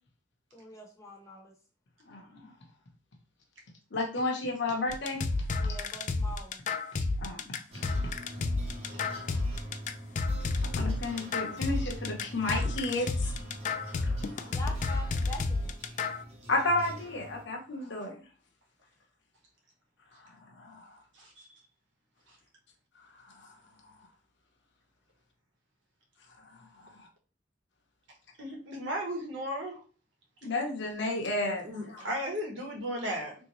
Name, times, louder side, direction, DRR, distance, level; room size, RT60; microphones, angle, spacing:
voice 1, 0.5-1.5 5.6-6.6 14.5-15.8, left 2 dB, 15° left, -1 dB, 0.8 m, -44 dB
voice 2, 2.1-2.5 3.9-5.2 7.2-7.5 10.6-13.3 14.0-14.1 14.4-14.5 16.5-18.2 20.6-20.8 30.4-32.0, left 2 dB, 65° left, 0 dB, 0.8 m, -32 dB
sound 1, 4.9-16.2, left 3 dB, 40° left, 0.3 m, -31 dB
sound 2, 7.7-17.4, equal, 35° right, 1.0 m, -45 dB
voice 3, 21.1-21.5 28.4-29.8 31.6-33.3, equal, 70° right, 0 dB, 1.1 m, -35 dB
3.3 x 2.7 x 3.0 m, 0.37 s
head